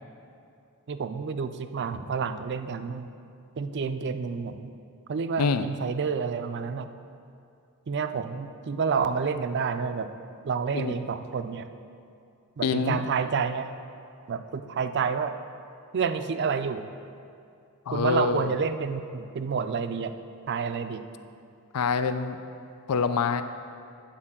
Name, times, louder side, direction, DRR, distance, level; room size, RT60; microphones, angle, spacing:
voice 1, 0.9-3.1 3.6-4.7 5.1-6.9 7.9-10.1 10.4-11.7 12.6-13.7 14.3-15.3 15.9-16.9 17.9-20.1 20.5-21.0, right 5 dB, 50° right, 10 dB, 0.4 m, -29 dB
voice 2, 12.6-13.0 17.9-18.5 21.7-22.4 22.9-23.4, left 5 dB, 85° left, 11 dB, 0.4 m, -25 dB
8.8 x 4.4 x 7.2 m, 2.5 s
head